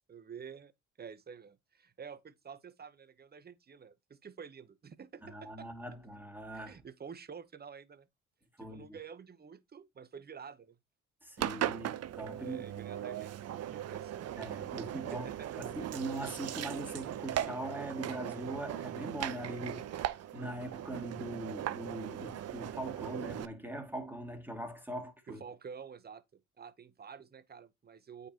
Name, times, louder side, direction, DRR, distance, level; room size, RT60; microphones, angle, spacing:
voice 1, 0.1-0.7 1.0-5.7 6.5-8.1 8.6-10.8 12.4-14.3 14.9-15.7 25.3-28.3, right 6 dB, 30° right, 0.9 m, -49 dB
voice 2, 5.2-6.8 8.6-8.8 11.2-12.7 14.4-25.4, right 1 dB, 5° right, 2.3 m, -41 dB
Engine, 11.4-23.5, right 11 dB, 55° right, 0.6 m, -38 dB
8.7 x 5.2 x 2.9 m
cardioid pair, 90°, 30 cm